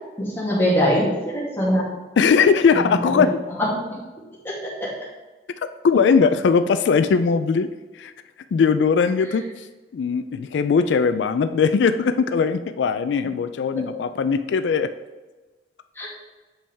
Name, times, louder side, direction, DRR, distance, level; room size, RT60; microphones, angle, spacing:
voice 1, 0.2-1.9 2.8-3.3 3.6-3.7 4.4-4.9 16.0-16.1, equal, 15° left, -6 dB, 2.1 m, -23 dB
voice 2, 2.2-3.4 5.8-7.7 7.9-8.1 8.5-9.7 9.9-14.9, left 5 dB, 90° left, 10 dB, 0.3 m, -19 dB
7.2 x 5.3 x 3.4 m, 1.2 s
head